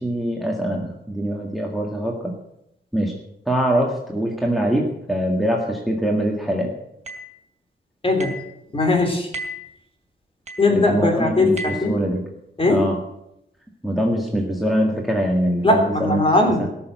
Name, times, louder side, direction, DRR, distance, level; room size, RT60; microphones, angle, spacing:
voice 1, 0.0-2.3 2.9-3.1 3.5-6.7 10.7-12.2 12.7-13.0 13.8-16.2, right 1 dB, ahead, 0 dB, 1.9 m, -23 dB
sound 1, 7.1-7.3 8.2-8.5 9.3-9.7 10.5-10.7 11.6-11.9, equal, 35° right, 3.0 m, -33 dB
voice 2, 8.0-8.3 8.7-9.3 10.6-12.0 12.6-12.9 15.6-16.7, left 2 dB, 30° left, 3 dB, 3.3 m, -19 dB
17.0 x 7.0 x 8.1 m, 0.82 s
wide cardioid pair, 115°, 20 cm